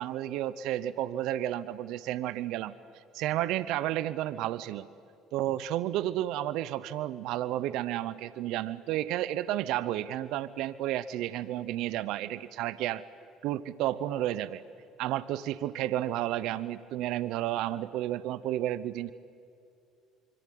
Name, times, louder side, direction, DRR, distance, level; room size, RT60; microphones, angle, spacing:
voice 1, 0.0-4.9 5.3-13.0 13.4-14.6 15.0-19.1, right 13 dB, 75° right, 15 dB, 0.8 m, -32 dB
26.0 x 23.5 x 9.4 m, 2.5 s
hypercardioid pair, 65°, 0 cm